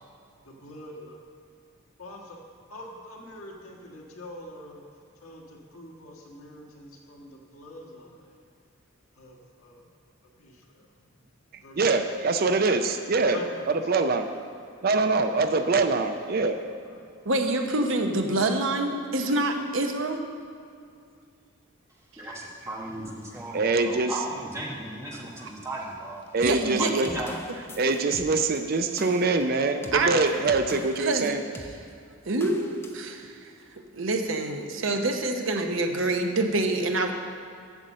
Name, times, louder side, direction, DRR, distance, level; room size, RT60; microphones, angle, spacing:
voice 1, 0.4-1.2 2.0-4.8 5.1-8.4 9.1-9.9 10.2-10.9 11.6-12.1 13.3-13.9 14.9-15.0 16.8-17.4, left 1 dB, 80° left, -1 dB, 1.6 m, -45 dB
voice 2, 11.8-13.4 13.9-14.3 14.8-16.6 23.5-24.1 26.3-27.1 27.8-31.4, right 3 dB, 45° right, 8 dB, 0.4 m, -24 dB
voice 3, 17.2-20.2 25.4-25.5 26.4-27.0 29.9-30.1 31.0-31.3 32.3-33.5 33.9-37.1, right 2 dB, 65° right, 4 dB, 0.9 m, -26 dB
voice 4, 22.2-26.2 26.8-27.4, right 2 dB, 15° right, -3 dB, 1.3 m, -36 dB
sound 1, 26.4-31.2 31.5-31.8 32.4-33.1, left 1 dB, 10° left, 0.5 m, -43 dB
8.2 x 6.6 x 7.5 m, 2.3 s
head